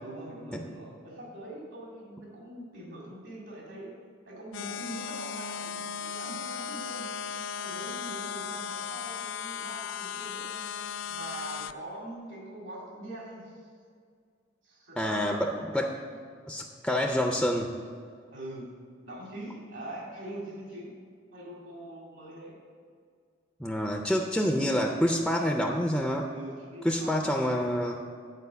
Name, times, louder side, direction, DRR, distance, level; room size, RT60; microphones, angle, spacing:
voice 1, 0.0-3.9 4.2-7.1 7.5-13.7 14.6-15.6 16.1-16.2 18.3-18.7 19.0-21.0 21.3-22.6 26.3-27.2 27.5-27.7, right 1 dB, 75° right, -3 dB, 2.3 m, -43 dB
sound 1, 4.5-11.7, left 7 dB, 85° left, 0.3 m, -36 dB
voice 2, 15.0-15.9 16.5-17.7 23.6-26.3 26.8-28.0, equal, ahead, 1 dB, 0.4 m, -27 dB
8.3 x 4.7 x 6.9 m, 2.1 s
head